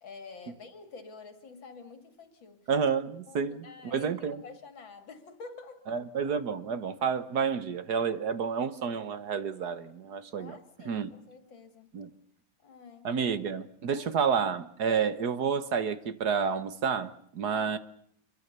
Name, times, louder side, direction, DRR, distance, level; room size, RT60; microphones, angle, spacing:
voice 1, 0.0-2.6 3.3-6.0 10.4-12.0 12.6-13.1 13.9-14.1 17.5-17.8, left 4 dB, 80° left, 3.4 m, -48 dB
voice 2, 2.7-4.4 5.9-10.6 10.9-11.1 11.9-12.1 13.0-17.8, right 6 dB, 60° right, 1.7 m, -30 dB
26.5 x 23.0 x 6.8 m
omnidirectional pair, 2.1 m